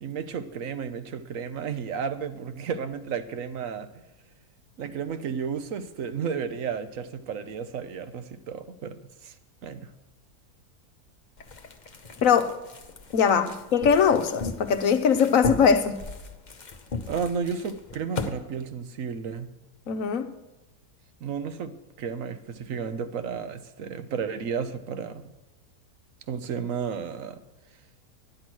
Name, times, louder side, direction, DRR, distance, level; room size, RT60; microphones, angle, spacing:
voice 1, 0.0-4.0 4.8-9.4 9.6-9.9 17.1-19.5 21.2-25.2 26.3-27.4, right 6 dB, 60° right, 11 dB, 1.2 m, -33 dB
sound 1, 11.4-18.3, left 4 dB, 35° left, 0.8 m, -36 dB
voice 2, 12.2-12.5 13.1-16.0 19.9-20.3, left 7 dB, 60° left, 9 dB, 1.2 m, -21 dB
11.5 x 9.9 x 6.2 m, 1.0 s
omnidirectional pair, 1.7 m